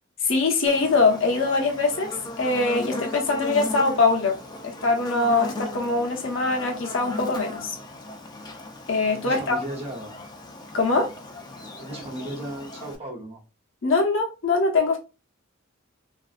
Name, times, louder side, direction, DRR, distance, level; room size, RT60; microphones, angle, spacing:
voice 1, 0.2-4.4 4.6-7.8 8.9-9.6 10.7-11.1 13.8-15.0, left 3 dB, 70° left, 0.8 m, -23 dB
Buzz, 0.7-13.0, left 1 dB, 20° left, 0.4 m, -37 dB
voice 2, 9.1-10.2 11.8-13.4, right 1 dB, 30° right, 0.8 m, -35 dB
2.9 x 2.6 x 2.4 m
head